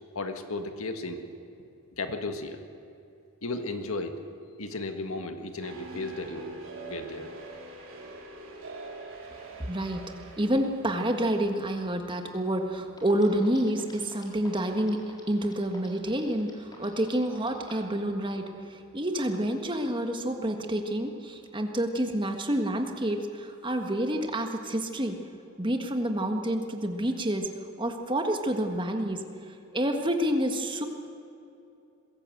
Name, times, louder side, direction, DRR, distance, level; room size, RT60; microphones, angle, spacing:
voice 1, 0.1-1.2 2.0-2.6 3.4-4.2 4.6-6.5 6.9-7.3, left 2 dB, 80° left, 6 dB, 1.7 m, -34 dB
sound 1, 5.6-10.9, right 2 dB, 65° right, 4.8 m, -43 dB
voice 2, 9.6-15.0 15.3-25.2 25.6-27.5 27.8-29.2 29.7-30.8, right 1 dB, 20° right, 4 dB, 1.6 m, -28 dB
sound 2, 12.6-12.7 13.0-17.9, left 2 dB, 20° left, 4.1 m, -50 dB
21.5 x 17.0 x 7.9 m, 2.7 s
head